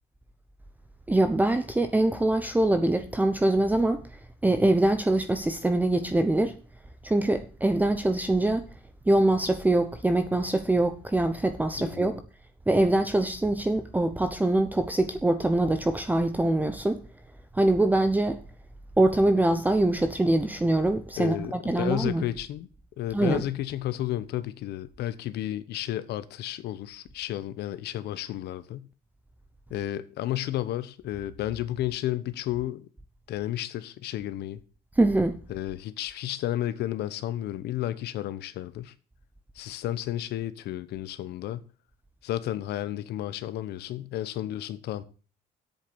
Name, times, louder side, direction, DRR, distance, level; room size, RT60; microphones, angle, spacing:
voice 1, 1.1-4.0 4.4-6.6 7.0-8.6 9.1-12.2 12.7-17.0 17.5-18.4 19.0-22.2 23.1-23.4 35.0-35.4, right 2 dB, 10° right, 0.9 m, -24 dB
voice 2, 11.8-12.1 21.2-22.7 23.0-28.9 29.7-32.9 33.3-34.6 35.5-38.9 39.5-41.6 42.2-45.0, left 13 dB, 75° left, 1.0 m, -32 dB
8.3 x 7.2 x 8.0 m
cardioid pair, 110°, 17 cm